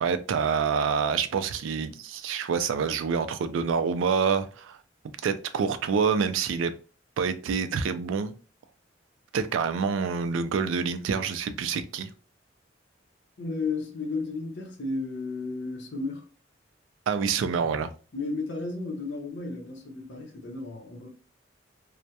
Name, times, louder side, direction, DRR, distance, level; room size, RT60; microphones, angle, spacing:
voice 1, 0.0-4.8 5.2-6.7 7.2-8.3 9.3-12.1 17.1-17.9, right 6 dB, 85° right, 0.3 m, -27 dB
voice 2, 13.4-16.3 18.1-21.1, left 3 dB, 65° left, 0.6 m, -33 dB
2.2 x 2.0 x 2.7 m
head